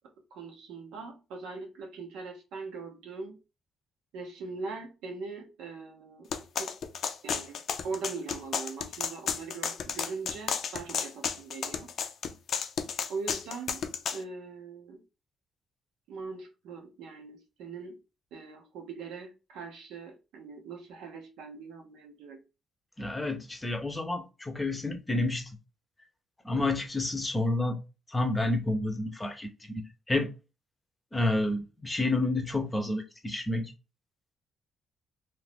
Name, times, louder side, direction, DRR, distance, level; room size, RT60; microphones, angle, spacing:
voice 1, 0.3-3.4 4.1-6.3 6.6-6.7 7.2-11.9 13.1-13.9 14.1-15.0 16.1-18.0 18.3-22.4, right 4 dB, 90° right, 0.8 m, -41 dB
sound 1, 6.3-14.2, left 7 dB, 60° left, 0.4 m, -32 dB
voice 2, 23.0-25.5 26.4-27.8 28.1-30.3 31.1-33.7, left 2 dB, 15° left, 0.6 m, -30 dB
2.6 x 2.4 x 3.4 m
cardioid pair, 90°, 0 cm